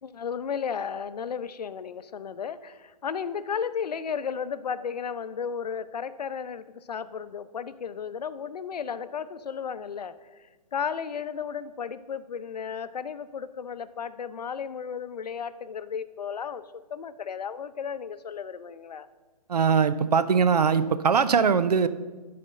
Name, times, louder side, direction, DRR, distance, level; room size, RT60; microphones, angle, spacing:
voice 1, 0.0-19.1, left 7 dB, 85° left, 13 dB, 0.6 m, -34 dB
voice 2, 19.5-21.9, right 6 dB, 80° right, 13 dB, 0.7 m, -21 dB
11.0 x 4.2 x 6.3 m, 1.3 s
hypercardioid pair, 175°, 20 cm